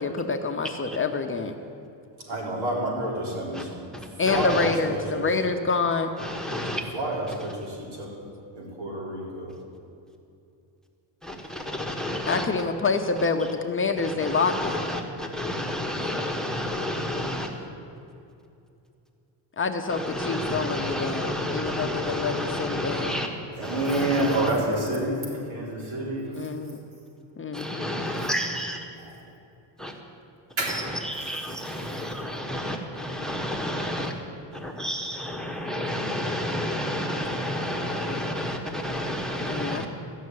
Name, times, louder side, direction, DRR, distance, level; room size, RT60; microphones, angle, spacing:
voice 1, 0.0-1.6 4.2-6.1 12.3-14.8 19.6-23.1 26.3-26.8 27.4-27.9 39.5-39.9, left 4 dB, 25° left, 5 dB, 0.7 m, -27 dB
voice 2, 2.3-3.9 4.3-5.3 6.9-8.1 8.6-9.5 23.6-26.3 30.6-30.8, right 1 dB, 80° right, -4 dB, 4.0 m, -28 dB
voice 3, 3.9-4.8 6.2-6.8 7.3-7.5 11.2-12.5 13.2-13.3 14.0-17.5 19.9-23.3 23.6-24.5 27.5-28.8 29.8-29.9 30.6-34.1 34.5-39.9, left 1 dB, ahead, 2 dB, 1.1 m, -31 dB
14.0 x 6.4 x 9.5 m, 2.6 s
cardioid pair, 125°, 48 cm